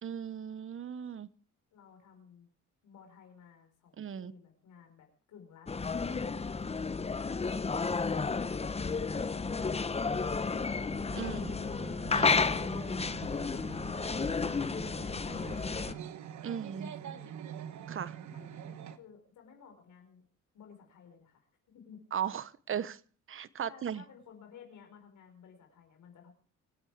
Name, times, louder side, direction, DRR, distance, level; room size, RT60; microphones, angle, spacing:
voice 1, 0.0-1.3 4.0-4.3 11.1-11.4 12.1-12.4 16.4-16.9 17.9-18.2 22.1-23.0 23.3-24.0, right 8 dB, 45° right, 17 dB, 1.0 m, -37 dB
voice 2, 1.7-2.5 2.8-7.2 7.6-8.0 8.3-9.7 10.1-12.0 13.5-14.7 15.0-16.1 16.4-17.4 18.3-20.2 20.5-22.0 23.5-26.3, left 7 dB, 80° left, 4 dB, 5.1 m, -55 dB
sound 1, 5.7-15.9, left 4 dB, 20° left, 0.8 m, -32 dB
sound 2, 10.9-19.0, right 9 dB, 65° right, 1.3 m, -45 dB
25.5 x 9.0 x 4.8 m, 0.41 s
cardioid pair, 90°, 30 cm